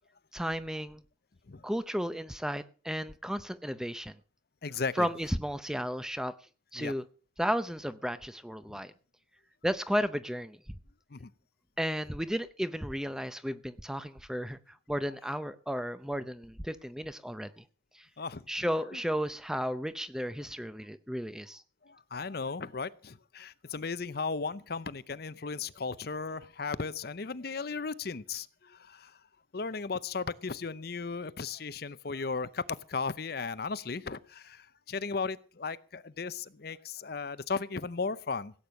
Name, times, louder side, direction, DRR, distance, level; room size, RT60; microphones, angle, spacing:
voice 1, 0.3-1.0 1.6-4.1 5.0-6.3 6.7-7.0 7.4-8.9 9.6-10.6 11.8-17.6 17.9-18.1 18.5-21.6, equal, 5° right, 0.6 m, -33 dB
voice 2, 4.6-5.1 6.8-6.9 8.7-8.8 11.1-11.3 18.2-18.6 18.9-19.0 21.8-29.2 29.5-32.6 32.9-38.5, left 4 dB, 55° left, 0.7 m, -36 dB
16.5 x 8.8 x 6.4 m
head